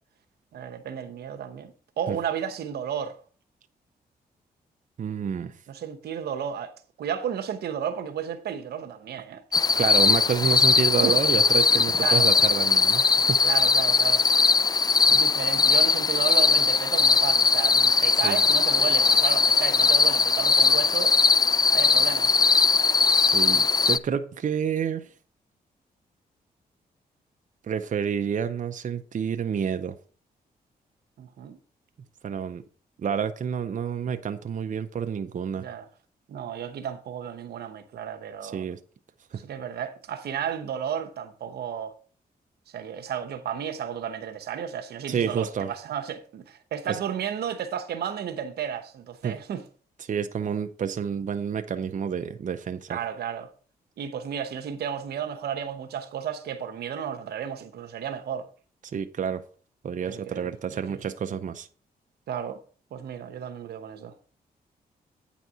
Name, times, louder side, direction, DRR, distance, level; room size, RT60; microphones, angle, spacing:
voice 1, 0.5-3.2 5.7-9.4 10.7-10.8 11.0-11.2 12.0-12.3 13.4-14.3 15.1-21.2 21.7-22.3 31.2-31.6 35.5-35.9 36.3-38.6 39.4-41.9 42.7-49.6 52.9-53.5 54.0-58.5 60.1-61.1 62.3-62.6 62.9-64.1, right 8 dB, 85° right, 0.9 m, -33 dB
voice 2, 5.0-5.6 9.8-13.4 15.1-15.2 18.1-18.4 23.0-25.1 27.6-30.0 32.2-32.6 33.0-35.7 38.4-38.8 39.3-39.4 45.1-45.7 46.9-47.0 49.2-49.4 50.0-53.0 58.9-59.4 59.8-61.7, right 7 dB, 50° right, 0.7 m, -29 dB
sound 1, 9.5-24.0, left 4 dB, 25° left, 0.4 m, -20 dB
9.1 x 4.2 x 6.1 m
cardioid pair, 75°, 16 cm